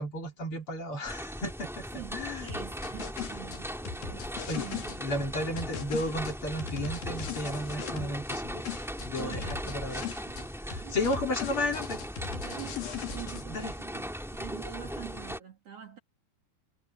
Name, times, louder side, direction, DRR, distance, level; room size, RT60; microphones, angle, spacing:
voice 1, 0.0-2.5 4.5-4.7 5.0-8.6 9.0-10.1 10.7-12.0 13.5-13.7, left 1 dB, 40° left, 3.4 m, -33 dB
sound 1, 1.0-15.4, equal, ahead, 0.9 m, -39 dB
voice 2, 1.9-5.2 7.9-8.2 9.2-10.5 10.8-11.0 12.3-16.0, right 11 dB, 50° right, 2.6 m, -46 dB
sound 2, 2.5-5.0 5.6-8.4 8.7-10.5 10.7-13.4, left 7 dB, 80° left, 4.5 m, -39 dB
omnidirectional pair, 4.0 m